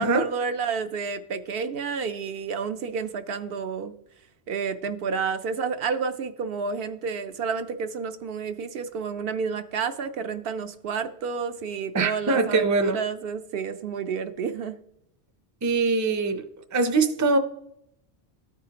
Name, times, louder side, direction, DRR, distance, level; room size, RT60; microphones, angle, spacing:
voice 1, 0.0-3.9 4.5-14.7, right 5 dB, 65° right, 0.7 m, -30 dB
voice 2, 11.9-13.0 15.6-16.4 16.7-17.4, right 3 dB, 25° right, 0.5 m, -22 dB
13.5 x 4.9 x 2.8 m
omnidirectional pair, 1.1 m